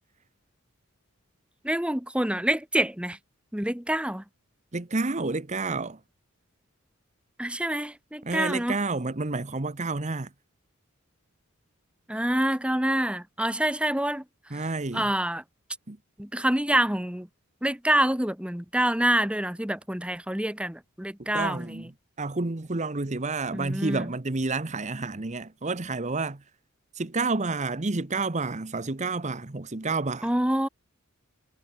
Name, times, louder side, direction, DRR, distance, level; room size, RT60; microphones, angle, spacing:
voice 1, 1.6-3.2 3.5-4.2 7.4-8.8 12.1-14.2 14.5-14.6 14.9-15.4 16.2-17.3 17.6-21.9 23.5-24.1 30.2-30.7, right 1 dB, 5° right, 1.4 m, -26 dB
voice 2, 4.7-6.0 8.2-10.3 14.5-15.1 15.9-16.0 21.2-21.9 22.2-26.4 26.9-30.3, right 3 dB, 35° right, 1.0 m, -30 dB
head